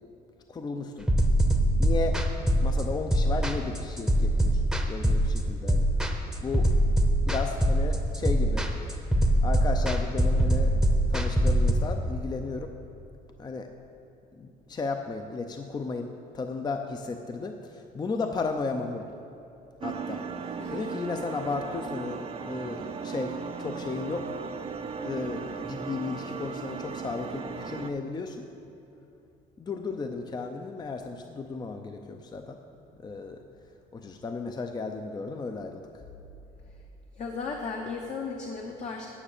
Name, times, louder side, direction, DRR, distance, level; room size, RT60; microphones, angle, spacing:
voice 1, 0.5-1.1 1.8-2.2 2.6-5.9 6.4-6.7 7.2-8.7 9.4-10.7 11.1-12.7 13.4-13.7 14.4-16.1 16.3-19.1 19.8-20.2 20.7-24.2 25.0-28.4 29.6-32.6 33.0-33.4 33.9-35.9, left 4 dB, 25° left, 5 dB, 0.6 m, -34 dB
sound 1, 1.1-11.7, right 1 dB, 5° right, 0.8 m, -23 dB
sound 2, 19.8-27.9, right 5 dB, 35° right, 0.6 m, -36 dB
voice 2, 37.2-39.1, left 4 dB, 45° left, 1 dB, 0.9 m, -35 dB
10.0 x 6.1 x 6.6 m, 2.9 s
cardioid pair, 110°, 17 cm